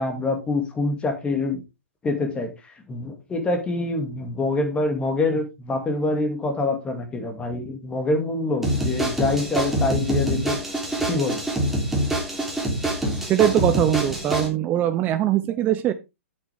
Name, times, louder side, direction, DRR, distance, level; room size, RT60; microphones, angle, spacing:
voice 1, 0.0-1.6 2.0-10.6 11.1-11.4, left 2 dB, 15° left, 5 dB, 2.4 m, -25 dB
sound 1, 8.6-14.5, right 1 dB, 5° right, 3.3 m, -25 dB
voice 2, 13.3-15.9, right 11 dB, 25° right, 10 dB, 0.7 m, -21 dB
8.5 x 8.3 x 3.5 m, 0.24 s
figure-of-eight pair, 125°, 8 cm